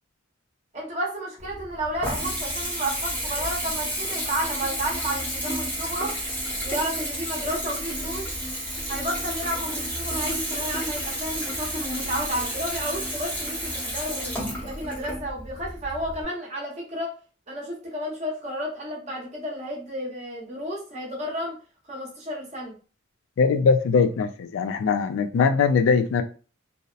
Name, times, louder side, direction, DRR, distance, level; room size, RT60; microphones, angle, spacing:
voice 1, 0.7-6.1 6.6-8.3 8.9-14.3 14.6-17.1 17.5-21.6 21.9-22.7, right 1 dB, 35° right, 0.8 m, -32 dB
Water tap faucet / Bathtub (filling or washing) / Trickle dribble, 1.4-16.2, equal, 10° left, 0.6 m, -31 dB
voice 2, 23.4-26.2, left 5 dB, 75° left, 0.3 m, -21 dB
2.7 x 2.0 x 2.3 m
head